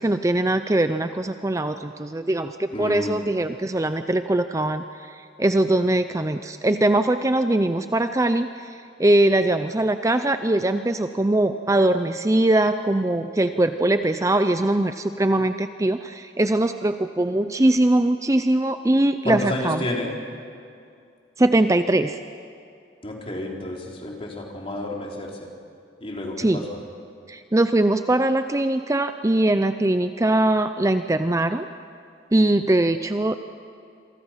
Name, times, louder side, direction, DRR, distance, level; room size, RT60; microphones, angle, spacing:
voice 1, 0.0-19.9 21.4-22.2 26.4-26.7 27.3-31.6 32.3-33.4, right 1 dB, 15° right, 9 dB, 0.5 m, -21 dB
voice 2, 2.7-3.2 19.2-20.1 23.0-25.3 26.0-26.8, left 1 dB, 30° left, -1 dB, 3.6 m, -30 dB
27.5 x 24.0 x 5.8 m, 2.5 s
head